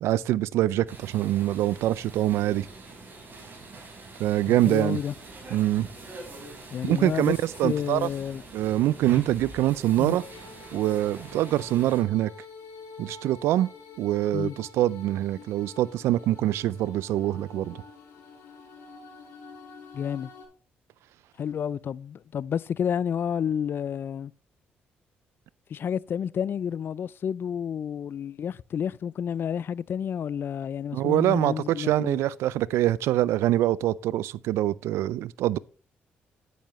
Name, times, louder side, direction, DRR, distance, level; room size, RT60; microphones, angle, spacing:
voice 1, 0.0-2.7 4.2-5.0 5.5-5.9 6.8-8.1 8.5-10.2 10.7-12.3 13.0-13.7 14.0-17.8 30.9-35.6, right 14 dB, 80° right, 0.4 m, -24 dB
sound 1, 0.9-12.0, right 4 dB, 50° right, 4.9 m, -43 dB
voice 2, 4.5-5.1 6.7-7.3 7.6-8.4 10.0-10.2 14.3-14.6 19.9-20.3 21.4-24.3 25.7-32.2, left 8 dB, 55° left, 0.4 m, -30 dB
sound 2, 10.0-20.5, left 4 dB, 75° left, 4.1 m, -47 dB
9.2 x 9.2 x 3.1 m
supercardioid pair, 65°, 4 cm